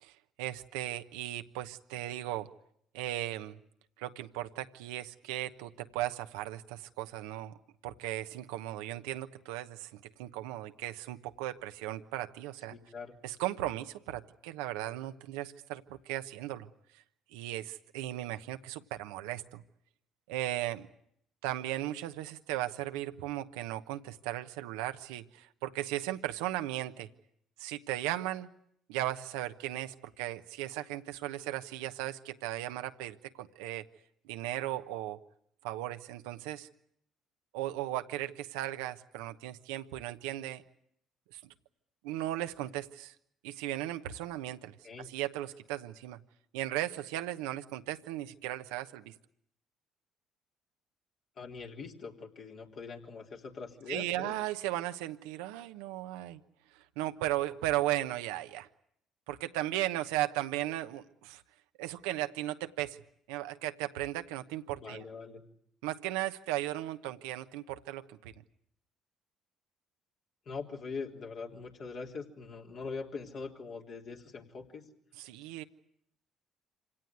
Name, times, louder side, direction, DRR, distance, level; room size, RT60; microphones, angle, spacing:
voice 1, 0.0-2.5 2.9-3.6 4.0-7.5 7.8-12.7 13.2-16.7 17.3-19.6 20.3-20.9 21.4-27.1 27.6-28.5 28.9-33.8 34.2-35.2 35.6-36.7 37.5-40.6 41.3-41.4 42.0-43.1 43.4-44.7 45.0-46.2 46.5-49.1 53.9-56.4 56.7-58.7 59.3-61.4 61.8-63.0 63.3-65.0 65.8-68.3 75.2-75.6, right 14 dB, 85° right, 8 dB, 1.0 m, -36 dB
voice 2, 12.7-13.2 44.8-45.1 51.4-54.3 64.8-65.4 70.5-74.8, left 4 dB, 55° left, 0 dB, 3.6 m, -42 dB
26.0 x 17.5 x 9.3 m, 0.72 s
hypercardioid pair, 60°, 0 cm